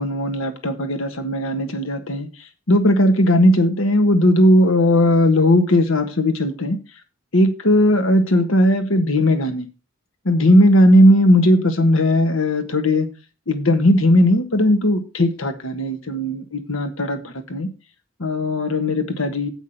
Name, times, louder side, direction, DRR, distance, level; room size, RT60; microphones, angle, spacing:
voice 1, 0.0-2.3 2.7-6.8 7.3-9.7 10.2-13.1 13.5-17.7 18.2-19.5, left 1 dB, 70° left, 1.4 m, -17 dB
8.3 x 5.9 x 5.7 m
head